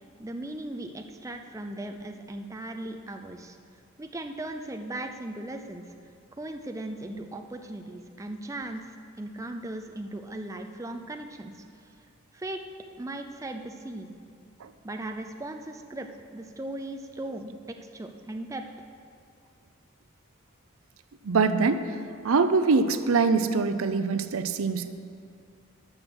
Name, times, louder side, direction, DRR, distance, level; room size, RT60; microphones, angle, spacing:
voice 1, 0.2-3.6 4.0-5.8 6.3-11.9 12.3-12.6 13.0-14.1 14.8-18.6, right 1 dB, 15° right, 5 dB, 0.5 m, -38 dB
voice 2, 21.2-21.9 22.2-24.9, right 4 dB, 85° right, 11 dB, 0.5 m, -23 dB
12.5 x 6.1 x 6.3 m, 2.3 s
head